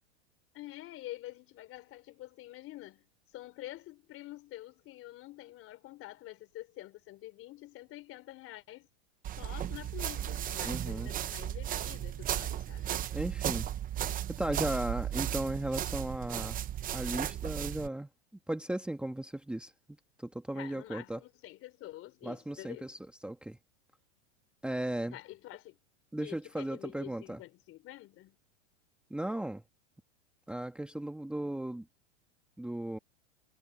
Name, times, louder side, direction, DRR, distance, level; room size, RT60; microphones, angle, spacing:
voice 1, 0.5-3.1 3.3-8.9 9.4-13.0 20.5-22.9 25.1-25.8 26.2-28.4, left 16 dB, 35° left, 4.1 m, -47 dB
sound 1, 9.2-17.9, right 11 dB, 25° right, 0.9 m, -35 dB
voice 2, 10.6-11.1 13.1-13.7 14.4-16.6 16.9-18.1 18.5-19.7 20.2-21.2 22.2-23.6 24.6-25.2 26.1-27.4 29.1-29.6 30.5-31.8 32.6-33.0, right 1 dB, 5° right, 1.6 m, -36 dB
supercardioid pair, 135°, 36 cm